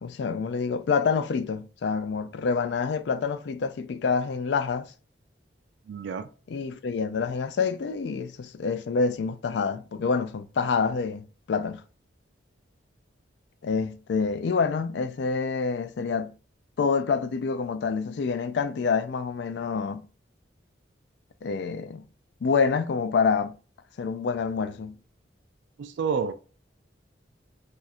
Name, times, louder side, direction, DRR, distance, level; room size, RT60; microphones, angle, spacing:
voice 1, 0.0-4.9 6.5-11.8 13.6-16.3 16.8-20.0 21.4-22.0 22.4-23.5 24.0-24.9, left 5 dB, 70° left, 0.3 m, -27 dB
voice 2, 5.9-6.3 25.8-26.3, right 6 dB, 75° right, 0.3 m, -29 dB
2.5 x 2.4 x 4.1 m
head